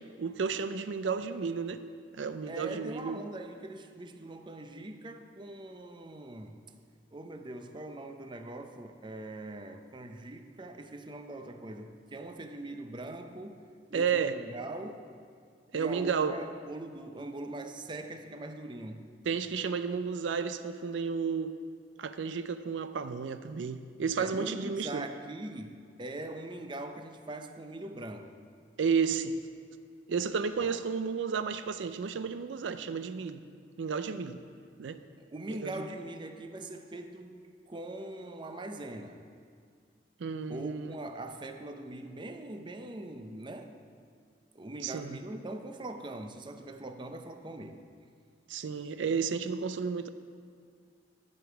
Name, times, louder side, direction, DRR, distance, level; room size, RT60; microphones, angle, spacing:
voice 1, 0.2-1.8 2.1-3.2 13.9-14.4 15.7-16.4 19.3-21.6 22.0-25.1 28.8-29.4 30.1-33.4 33.8-34.4 34.8-35.0 35.5-35.8 40.2-40.9 44.8-45.2 48.5-50.1, right 6 dB, 85° right, 11 dB, 0.4 m, -32 dB
voice 2, 2.5-6.6 7.1-13.6 13.9-15.1 15.7-19.0 24.2-28.3 30.6-30.7 35.3-37.3 37.7-39.2 40.5-43.7 44.5-47.8, right 2 dB, 25° right, 6 dB, 0.6 m, -42 dB
11.0 x 5.0 x 8.0 m, 2.1 s
head